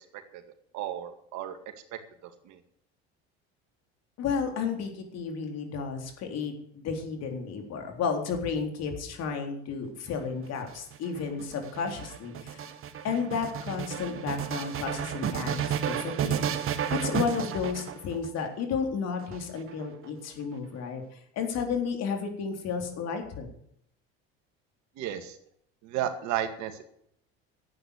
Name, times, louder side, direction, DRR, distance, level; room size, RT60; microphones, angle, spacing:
voice 1, 0.7-1.6 1.9-2.6 25.0-25.4 25.8-26.8, right 11 dB, 65° right, 8 dB, 2.1 m, -34 dB
voice 2, 4.2-12.7 13.0-16.4 16.9-23.5, left 6 dB, 55° left, 4 dB, 3.8 m, -32 dB
sound 1, 10.4-18.4 19.2-20.1, right 9 dB, 45° right, 1.5 m, -32 dB
12.0 x 8.7 x 8.1 m, 0.69 s
supercardioid pair, 95°, 31 cm